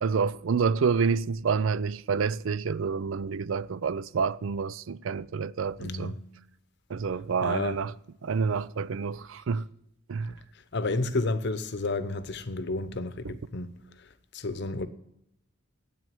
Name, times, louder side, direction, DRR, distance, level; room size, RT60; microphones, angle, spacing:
voice 1, 0.0-6.1 6.9-7.9 8.2-9.7 10.1-10.3, right 5 dB, 80° right, 0.5 m, -28 dB
voice 2, 5.8-6.2 7.4-7.8 10.7-13.7 14.0-14.9, left 2 dB, 60° left, 0.8 m, -31 dB
9.3 x 8.6 x 9.1 m
head